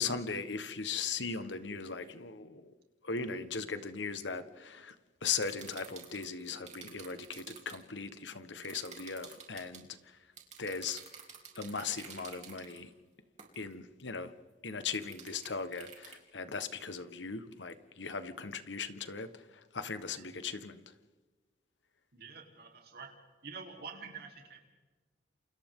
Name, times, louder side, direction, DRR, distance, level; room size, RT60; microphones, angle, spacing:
voice 1, 0.0-2.7 3.0-4.9 5.2-10.0 10.6-11.0 11.6-12.9 13.5-14.3 14.6-19.3 19.7-20.8, left 5 dB, 85° left, 10 dB, 1.4 m, -38 dB
sound 1, 5.3-7.8 8.6-9.8 10.4-12.8 13.4-13.6 14.9-16.2, right 7 dB, 40° right, 3.6 m, -50 dB
voice 2, 20.1-20.5 22.1-23.2 23.4-24.6, right 5 dB, 60° right, 2 dB, 3.5 m, -47 dB
29.5 x 28.5 x 3.8 m, 1.3 s
head